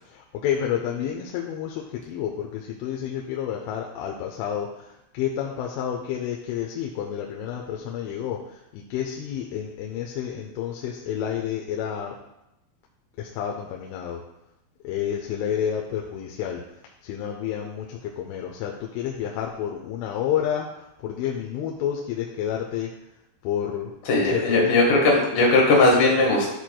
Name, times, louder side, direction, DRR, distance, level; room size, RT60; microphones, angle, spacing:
voice 1, 0.1-12.2 13.2-14.2 14.8-16.6 17.0-22.9 23.4-25.0, left 9 dB, 85° left, 1 dB, 3.0 m, -30 dB
voice 2, 24.1-26.5, left 2 dB, 60° left, -3 dB, 3.0 m, -18 dB
11.5 x 4.4 x 2.3 m, 0.89 s
omnidirectional pair, 5.6 m